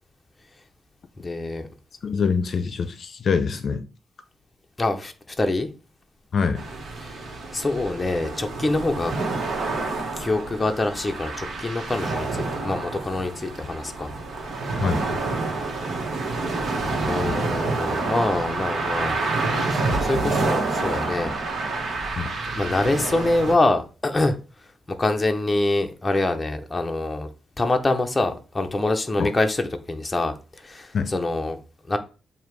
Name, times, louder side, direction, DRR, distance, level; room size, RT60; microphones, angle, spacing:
voice 1, 1.2-1.7 4.8-5.7 7.0-7.2 7.5-9.1 10.2-14.1 15.6-16.0 17.0-19.2 19.7-21.3 22.5-24.4 25.0-27.3 27.6-31.6 31.9-32.0, left 2 dB, 20° left, 0.8 m, -25 dB
voice 2, 2.0-3.8 6.3-6.6 14.8-15.1 22.2-22.3 29.2-29.3 30.9-31.1, left 5 dB, 55° left, 0.6 m, -24 dB
sound 1, 6.6-23.6, right 3 dB, 65° right, 1.5 m, -28 dB
7.1 x 2.8 x 4.7 m
cardioid pair, 115°, 0 cm